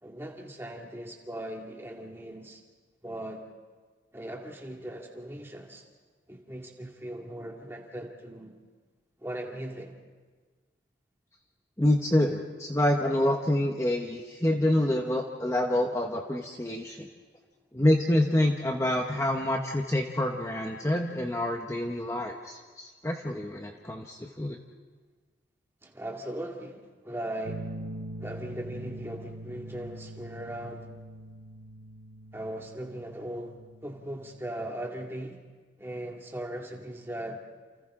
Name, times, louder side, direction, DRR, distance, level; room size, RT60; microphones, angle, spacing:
voice 1, 0.0-2.6 3.0-3.4 4.1-5.8 6.3-8.6 9.2-9.9 25.8-27.7 28.2-30.9 32.3-33.6 33.8-35.4 35.8-37.4, right 1 dB, 15° right, 0 dB, 2.3 m, -39 dB
voice 2, 11.8-17.1 17.7-24.6, left 1 dB, 15° left, 2 dB, 1.0 m, -27 dB
sound 1, 27.5-34.7, right 1 dB, 75° right, 0.7 m, -43 dB
29.0 x 28.5 x 3.8 m, 1.4 s
head